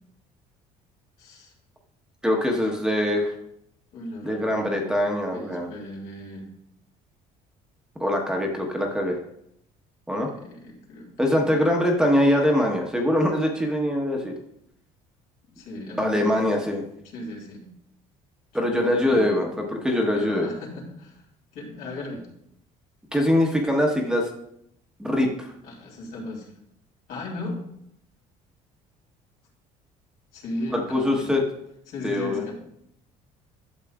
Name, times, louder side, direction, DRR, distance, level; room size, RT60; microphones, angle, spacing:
voice 1, 1.2-1.5 3.9-4.9 5.3-6.5 10.1-11.7 15.5-16.3 17.0-17.7 18.6-19.3 20.1-21.2 21.5-22.2 25.6-26.5 27.1-27.6 30.3-31.3 31.9-32.5, left 2 dB, 70° left, -2 dB, 3.1 m, -36 dB
voice 2, 2.2-3.3 4.2-5.7 8.0-9.2 10.1-10.3 11.2-14.3 16.0-16.9 18.5-20.5 23.1-24.3 25.0-25.5 30.7-31.4 32.0-32.5, left 1 dB, 5° right, 0 dB, 1.0 m, -23 dB
12.0 x 7.3 x 2.3 m, 0.75 s
cardioid pair, 150°, 14 cm